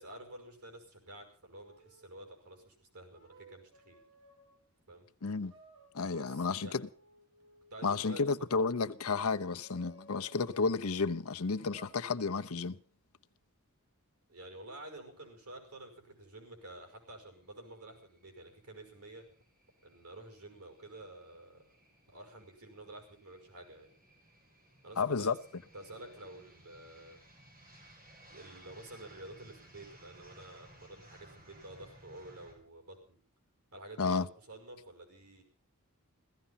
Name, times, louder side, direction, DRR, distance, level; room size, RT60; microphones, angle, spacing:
voice 1, 0.0-4.0 4.9-5.1 6.2-6.7 7.7-8.5 14.3-19.3 19.8-21.8 22.1-23.9 24.8-25.4 25.7-27.2 28.3-33.2 33.7-35.4, right 1 dB, 90° right, 5.4 m, -50 dB
sound 1, 1.6-2.2 3.1-4.7 5.5-10.7 11.5-11.9, right 2 dB, 60° right, 4.7 m, -60 dB
voice 2, 5.2-5.5 5.9-6.9 7.8-12.8 25.0-25.4 34.0-34.3, left 4 dB, 80° left, 0.8 m, -32 dB
sound 2, 16.9-32.5, right 1 dB, 40° right, 6.4 m, -60 dB
16.5 x 14.5 x 5.7 m
head